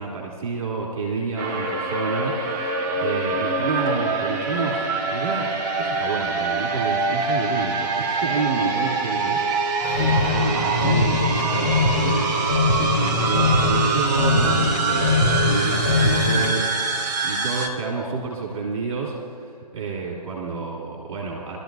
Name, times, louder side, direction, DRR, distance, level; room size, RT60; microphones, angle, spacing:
voice 1, 0.0-5.5 5.8-12.3 12.8-21.6, right 4 dB, 45° right, -3 dB, 3.1 m, -29 dB
sound 1, 1.4-17.7, right 4 dB, 30° right, 1.4 m, -25 dB
sound 2, 9.8-16.6, left 2 dB, 70° left, 3.2 m, -22 dB
24.0 x 13.0 x 2.8 m, 2.3 s
figure-of-eight pair, 135°, 21 cm